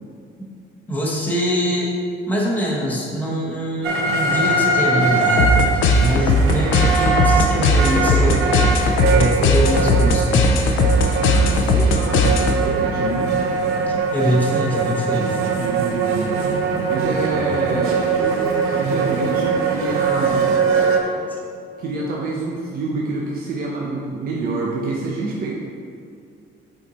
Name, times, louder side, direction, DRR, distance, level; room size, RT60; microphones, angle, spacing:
voice 1, 0.9-1.9 2.3-8.5 9.1-10.5 13.9-15.4 21.3-21.4, equal, 10° left, -4 dB, 1.2 m, -23 dB
sound 1, 3.8-21.0, right 4 dB, 85° right, 0.8 m, -21 dB
sound 2, 5.4-12.8, left 1 dB, 70° left, 0.6 m, -18 dB
voice 2, 11.2-13.3 15.5-16.4 16.9-18.4 18.6-20.5 21.8-25.5, right 3 dB, 45° right, -3 dB, 0.8 m, -27 dB
7.9 x 4.4 x 4.2 m, 2.4 s
cardioid pair, 145°, 21 cm